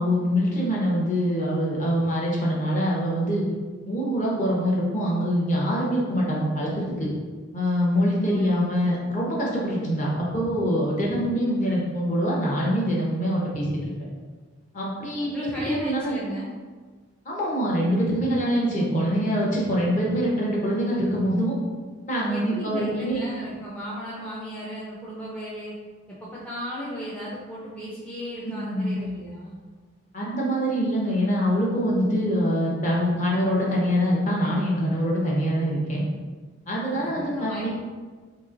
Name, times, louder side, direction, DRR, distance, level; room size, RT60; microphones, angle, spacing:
voice 1, 0.0-3.4 3.8-7.1 7.5-13.7 14.7-16.2 17.2-21.6 22.1-23.2 28.4-29.0 30.1-36.0 36.7-37.7, equal, 35° left, -4 dB, 0.8 m, -24 dB
voice 2, 7.9-8.5 15.2-16.5 22.3-25.7 26.1-29.6 36.8-37.7, equal, 5° left, -8 dB, 0.4 m, -35 dB
3.0 x 2.8 x 3.7 m, 1.4 s
head